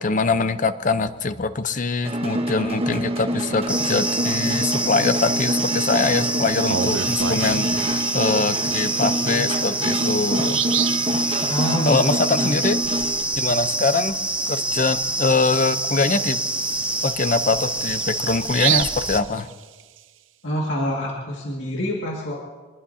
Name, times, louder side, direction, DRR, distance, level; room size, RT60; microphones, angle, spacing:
voice 1, 0.0-10.6 11.9-12.8 13.4-14.2 14.5-16.4 17.0-19.5, left 3 dB, 45° left, 12 dB, 0.7 m, -23 dB
sound 1, 2.0-13.2, right 1 dB, 30° right, 1.1 m, -26 dB
sound 2, 3.7-19.2, right 2 dB, 5° right, 0.7 m, -26 dB
Bird vocalization bird call bird song, 6.5-7.9 9.4-9.5 9.9-10.0 10.4-11.1 14.6-14.7 15.1-15.2 15.7-20.0, right 10 dB, 85° right, 0.6 m, -29 dB
voice 2, 11.5-12.0 12.4-12.5 20.4-22.5, equal, 75° left, -2 dB, 2.1 m, -26 dB
24.5 x 20.5 x 2.8 m, 1.4 s
head